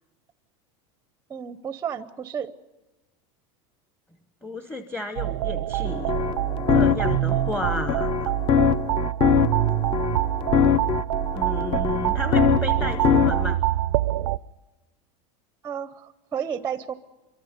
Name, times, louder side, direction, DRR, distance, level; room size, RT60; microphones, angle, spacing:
voice 1, 1.3-2.5 15.6-16.9, right 8 dB, 15° right, 13 dB, 0.7 m, -32 dB
voice 2, 4.4-6.1 6.7-8.3 11.3-13.6, left 1 dB, 5° left, 8 dB, 0.9 m, -33 dB
sound 1, 5.2-14.4, right 15 dB, 85° right, 0.6 m, -25 dB
sound 2, 5.8-13.5, left 8 dB, 35° left, 0.8 m, -23 dB
27.0 x 24.0 x 5.2 m, 1.1 s
supercardioid pair, 155°, 15 cm